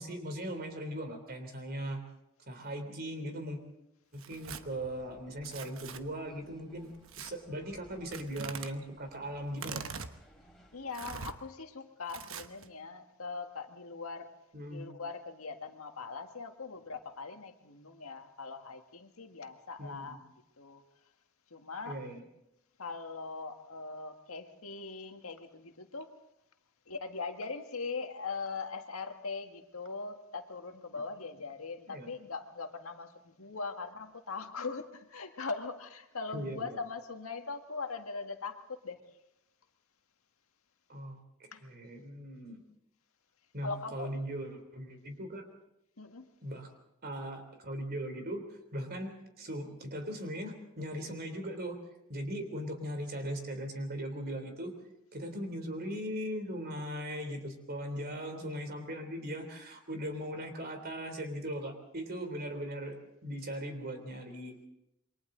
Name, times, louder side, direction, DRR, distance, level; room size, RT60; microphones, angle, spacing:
voice 1, 0.0-2.0 2.5-3.6 4.1-6.9 7.2-9.8 14.5-14.9 19.8-20.2 21.8-22.2 31.9-32.1 36.3-36.8 40.9-42.6 43.5-45.5 46.4-46.7 47.0-48.4 48.7-51.8 52.1-54.7 55.1-64.6, equal, 45° right, 6 dB, 3.4 m, -39 dB
Tearing, 4.1-4.6 5.4-6.0 7.1-7.3 8.1-8.7 9.5-10.1 10.9-11.3 12.1-12.7, right 6 dB, 65° right, 1.1 m, -42 dB
sound 1, 4.3-11.4, equal, ahead, 3.3 m, -61 dB
voice 2, 10.7-14.3 14.7-20.2 20.6-20.8 21.5-22.0 22.8-26.1 26.9-38.6 38.8-39.0 41.5-41.6 43.6-44.1 46.0-46.3, left 4 dB, 80° left, 6 dB, 1.8 m, -41 dB
28.0 x 23.5 x 3.9 m, 0.84 s
head